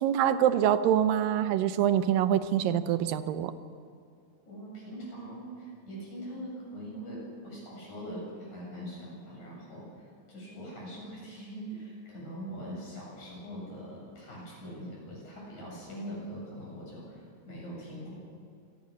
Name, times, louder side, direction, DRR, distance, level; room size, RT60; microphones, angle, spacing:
voice 1, 0.0-3.5, right 10 dB, 85° right, 12 dB, 2.6 m, -25 dB
voice 2, 4.5-18.2, equal, 60° left, -4 dB, 9.6 m, -42 dB
27.5 x 18.0 x 6.5 m, 2.4 s
omnidirectional pair, 3.9 m